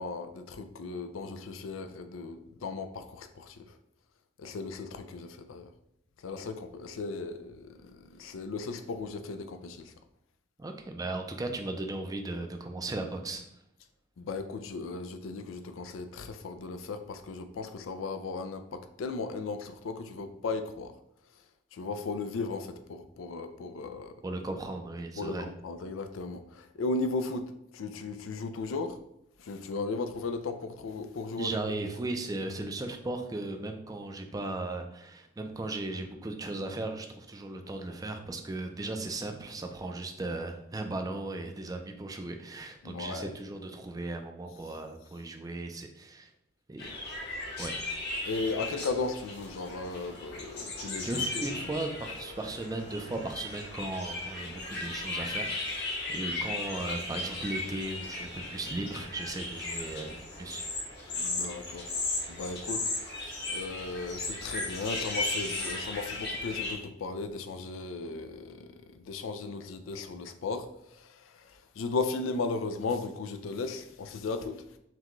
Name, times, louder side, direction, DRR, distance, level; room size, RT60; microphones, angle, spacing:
voice 1, 0.0-3.8 4.4-5.7 6.2-9.9 14.2-20.9 21.7-24.2 25.2-29.0 29.4-31.6 42.8-43.3 48.2-51.8 61.1-61.9 62.3-62.9 63.5-74.8, left 3 dB, 90° left, 8 dB, 0.4 m, -36 dB
voice 2, 10.6-13.4 24.2-25.4 31.4-46.3 46.7-46.9 47.6-47.7 51.0-60.6, right 2 dB, 20° right, 5 dB, 0.4 m, -37 dB
sound 1, 46.8-66.7, left 2 dB, 60° left, 1.3 m, -36 dB
5.8 x 2.2 x 3.0 m, 0.80 s
head